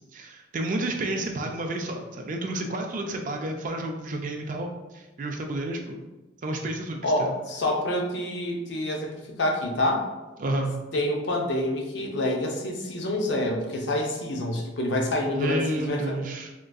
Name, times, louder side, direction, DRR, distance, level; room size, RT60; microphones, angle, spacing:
voice 1, 0.1-6.0 6.4-7.3 10.4-10.7 15.3-16.5, right 1 dB, 40° right, 3 dB, 0.3 m, -30 dB
voice 2, 7.0-9.1 9.4-10.1 10.9-16.2, left 1 dB, 65° left, 1 dB, 0.5 m, -27 dB
3.7 x 2.4 x 2.3 m, 1.1 s
head